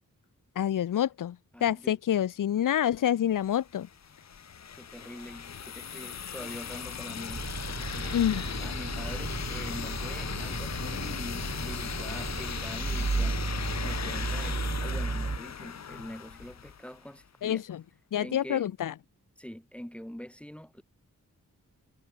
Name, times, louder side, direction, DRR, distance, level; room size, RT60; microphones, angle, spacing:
voice 1, 0.6-3.9 8.1-8.4 17.4-17.8 18.1-18.9, left 10 dB, 70° left, 0.7 m, -27 dB
voice 2, 1.5-2.0 4.8-8.3 8.6-17.6 18.2-18.7 19.4-20.8, equal, 5° left, 6.8 m, -44 dB
sound 1, 3.4-17.1, left 7 dB, 55° left, 1.0 m, -37 dB
sound 2, 7.3-15.4, right 4 dB, 30° right, 2.3 m, -34 dB
wide cardioid pair, 110°, 33 cm